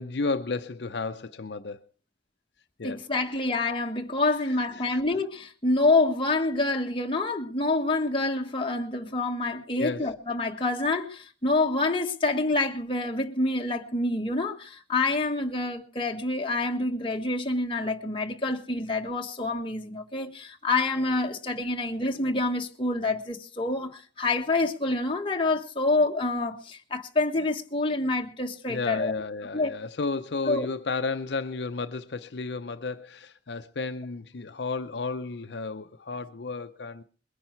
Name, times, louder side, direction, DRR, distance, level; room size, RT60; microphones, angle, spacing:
voice 1, 0.0-1.8 2.8-3.0 4.6-5.0 9.8-10.1 28.7-37.0, left 3 dB, 70° left, 0.7 m, -33 dB
voice 2, 2.8-29.1 29.5-29.7 30.5-30.7, left 2 dB, 30° left, 1.5 m, -27 dB
21.5 x 10.0 x 4.6 m
head